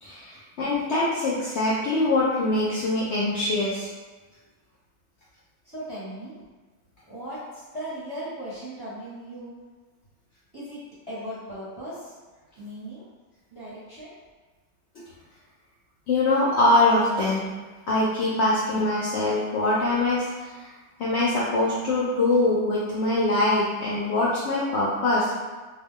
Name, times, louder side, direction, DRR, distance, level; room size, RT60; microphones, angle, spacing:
voice 1, 0.0-3.9 15.0-15.1 16.1-17.5 17.9-20.5 21.0-25.3, left 2 dB, 65° left, -6 dB, 0.7 m, -23 dB
voice 2, 5.6-6.3 7.1-9.6 10.5-10.8 11.1-12.2 12.6-13.0 13.5-14.1, equal, 20° right, -11 dB, 0.8 m, -37 dB
2.2 x 2.2 x 3.6 m, 1.3 s
omnidirectional pair, 1.5 m